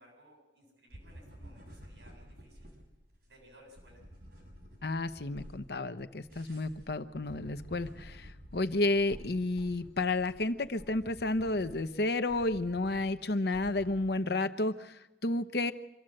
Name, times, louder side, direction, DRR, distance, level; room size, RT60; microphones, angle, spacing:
voice 1, 0.0-2.7 3.3-4.0, equal, 75° right, 1 dB, 7.7 m, -59 dB
sound 1, 0.9-14.2, equal, 60° right, 6.1 m, -52 dB
voice 2, 4.8-15.7, left 2 dB, 60° left, 9 dB, 0.9 m, -31 dB
26.0 x 13.5 x 7.7 m, 1.0 s
head